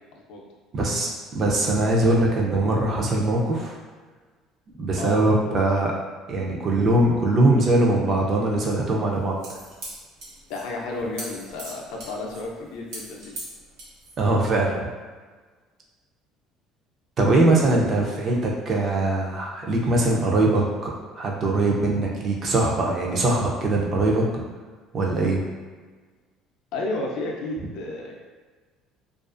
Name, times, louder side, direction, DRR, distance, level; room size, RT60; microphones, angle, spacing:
voice 1, 0.7-3.8 4.8-5.9 6.3-9.6 14.2-14.9 17.2-24.4 24.9-25.4, right 2 dB, 30° right, -2 dB, 0.4 m, -22 dB
sound 1, 9.1-14.3, right 2 dB, 80° right, 0.9 m, -40 dB
voice 2, 10.5-13.4 26.7-28.2, left 2 dB, 70° left, -1 dB, 0.4 m, -32 dB
2.4 x 2.3 x 2.4 m, 1.4 s
cardioid pair, 165°, 0 cm